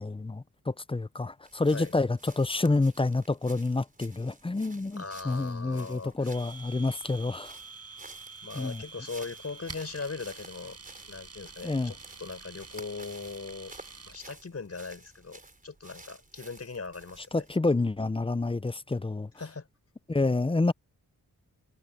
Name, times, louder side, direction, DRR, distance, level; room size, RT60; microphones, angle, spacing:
voice 1, 0.0-7.5 8.6-8.8 11.6-11.9 17.3-19.3 20.1-20.7, left 3 dB, 15° left, 0.6 m, -28 dB
sound 1, 1.4-17.6, right 2 dB, 25° right, 4.6 m, -53 dB
voice 2, 4.9-6.3 8.4-10.8 11.1-13.7 14.1-17.4 19.4-19.7, left 4 dB, 45° left, 5.0 m, -40 dB
Domestic sounds home sounds, 6.3-14.2, right 4 dB, 45° right, 6.6 m, -47 dB
wide cardioid pair, 95°, 35 cm